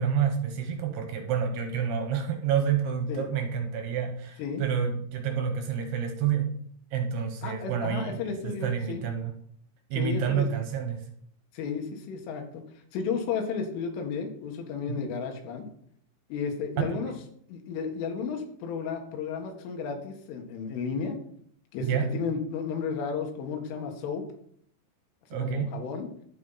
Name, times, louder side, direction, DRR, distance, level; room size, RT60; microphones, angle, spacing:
voice 1, 0.0-6.5 6.9-9.3 9.9-11.1 14.9-15.1 16.8-17.0 21.8-22.1 25.3-25.7, right 7 dB, 70° right, 4 dB, 2.8 m, -29 dB
voice 2, 7.4-9.0 9.9-10.5 11.5-12.6 12.9-15.7 16.3-17.1 17.5-21.2 21.7-24.2 25.3-26.1, left 5 dB, 85° left, 4 dB, 4.1 m, -33 dB
11.5 x 9.3 x 4.1 m, 0.65 s
omnidirectional pair, 5.5 m